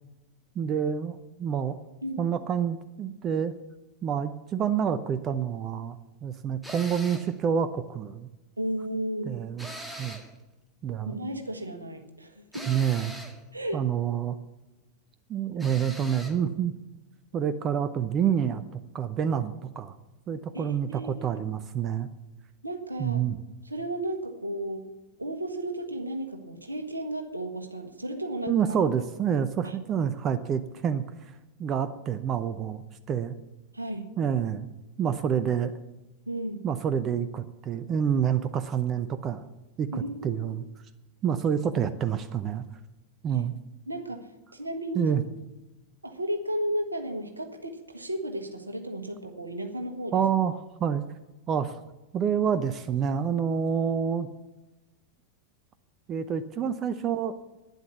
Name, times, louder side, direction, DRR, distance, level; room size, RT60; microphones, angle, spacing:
voice 1, 0.5-1.8 2.2-3.5 4.0-8.3 9.3-10.2 10.8-11.2 12.7-13.1 13.7-14.4 15.3-16.7 17.3-20.0 20.3-22.1 23.0-23.4 28.5-33.4 34.2-34.7 35.0-35.7 36.6-39.5 39.8-40.6 41.2-42.6 43.2-43.5 44.9-45.2 50.1-50.5 50.8-51.0 51.5-51.8 52.1-54.3 56.1-57.4, right 8 dB, 30° right, 13 dB, 0.7 m, -28 dB
sound 1, 6.6-7.3 9.6-10.4 12.5-13.4 15.6-16.4, equal, ahead, 1.8 m, -41 dB
voice 2, 8.6-9.4 11.1-12.7 13.5-13.8 20.5-21.3 22.6-23.3 23.6-24.8 25.2-28.8 29.6-29.8 33.7-34.1 36.3-36.6 39.9-40.4 43.3-43.4 43.9-45.1 46.0-50.2, right 1 dB, 80° right, 5 dB, 1.5 m, -34 dB
12.0 x 9.9 x 7.1 m, 1.0 s
figure-of-eight pair, 90°, 0 cm